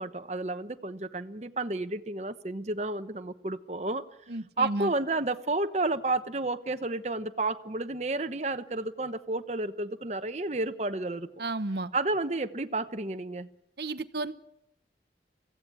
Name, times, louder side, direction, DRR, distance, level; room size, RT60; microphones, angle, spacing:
voice 1, 0.0-4.0 4.6-11.3 11.9-13.5, right 2 dB, 40° right, 1.0 m, -31 dB
voice 2, 4.3-4.9 11.4-11.9 13.8-14.3, right 2 dB, 65° right, 1.0 m, -32 dB
24.0 x 16.0 x 8.5 m
head